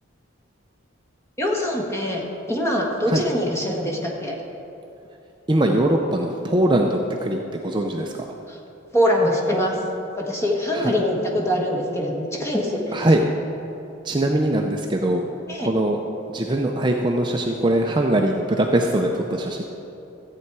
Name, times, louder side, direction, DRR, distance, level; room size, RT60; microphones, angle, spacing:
voice 1, 1.4-2.2 2.5-4.3 8.5-8.6 8.9-9.7 10.2-13.1 15.5-15.7, equal, 15° left, -1 dB, 1.4 m, -23 dB
voice 2, 5.5-8.3 10.7-10.9 12.9-13.2 14.0-15.2 15.6-16.0 16.3-19.6, right 1 dB, 25° right, 2 dB, 0.5 m, -21 dB
14.0 x 8.6 x 4.7 m, 2.9 s
head